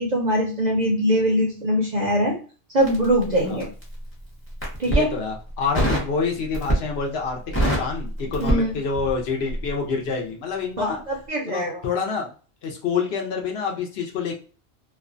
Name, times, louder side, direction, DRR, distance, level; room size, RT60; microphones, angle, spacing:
voice 1, 0.0-2.4 2.7-3.7 4.8-5.1 8.4-8.7 10.8-11.8, equal, 50° right, -1 dB, 0.5 m, -22 dB
Crackle, 2.8-3.9 4.5-5.1 5.7-6.1 6.5-7.0 7.3-9.2 9.5-9.7, right 1 dB, 15° left, 0.7 m, -24 dB
voice 2, 4.9-11.0 11.5-12.3 12.6-14.3, left 5 dB, 65° left, 1 dB, 0.8 m, -27 dB
2.5 x 2.1 x 2.4 m, 0.38 s
omnidirectional pair, 1.2 m